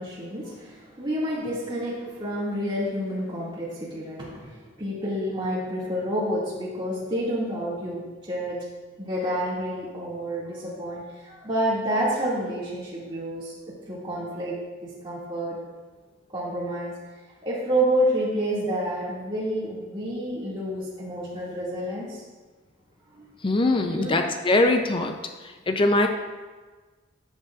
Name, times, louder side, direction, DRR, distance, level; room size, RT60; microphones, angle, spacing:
voice 1, 0.0-8.6 9.0-13.5 13.9-15.6 16.3-16.9 17.4-22.2 23.1-23.3 23.9-24.1, equal, 25° right, -8 dB, 2.2 m, -29 dB
voice 2, 23.4-25.1 25.7-26.1, left 2 dB, 25° left, 5 dB, 0.5 m, -21 dB
12.5 x 8.1 x 2.5 m, 1.4 s
head